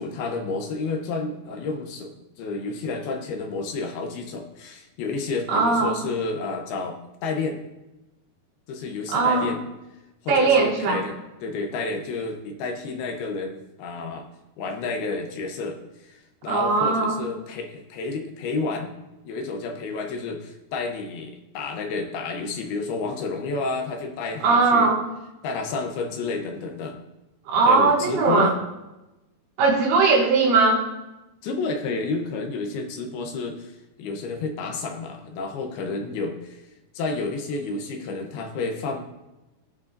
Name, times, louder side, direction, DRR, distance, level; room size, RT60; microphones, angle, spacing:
voice 1, 0.0-2.1 2.4-7.6 8.7-9.6 10.2-11.2 11.4-14.3 14.6-18.9 19.2-24.9 25.4-27.0 27.7-28.5 31.4-36.6 36.9-39.0, left 3 dB, 75° left, 3 dB, 2.7 m, -30 dB
voice 2, 5.5-6.0 9.1-9.5 10.3-11.0 16.5-17.2 24.4-25.0 27.5-28.5 29.6-30.8, right 4 dB, 75° right, -2 dB, 4.0 m, -19 dB
18.5 x 6.5 x 2.6 m, 1.0 s
omnidirectional pair, 4.9 m